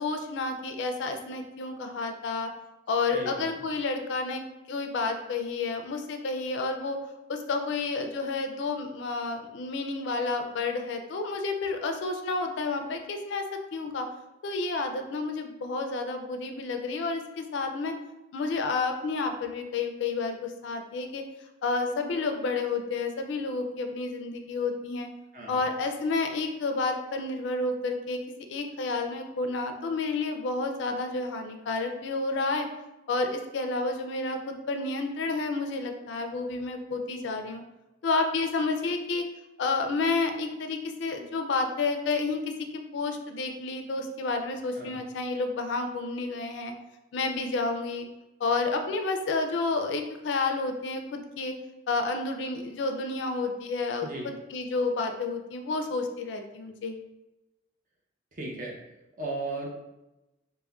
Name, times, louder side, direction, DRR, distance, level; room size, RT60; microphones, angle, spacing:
voice 1, 0.0-2.5 2.9-7.0 7.3-13.4 13.7-14.1 14.4-17.9 18.3-21.2 21.6-25.1 25.5-28.2 28.5-32.7 33.1-37.6 38.0-39.2 39.6-42.5 42.9-46.7 47.1-48.1 48.4-51.6 51.9-57.0, left 3 dB, 70° left, 5 dB, 0.3 m, -30 dB
voice 2, 3.1-3.6 25.3-25.7 44.8-45.0 54.0-54.3 58.3-58.8 59.2-59.7, right 2 dB, 45° right, -2 dB, 0.6 m, -36 dB
3.5 x 2.1 x 2.2 m, 0.97 s
head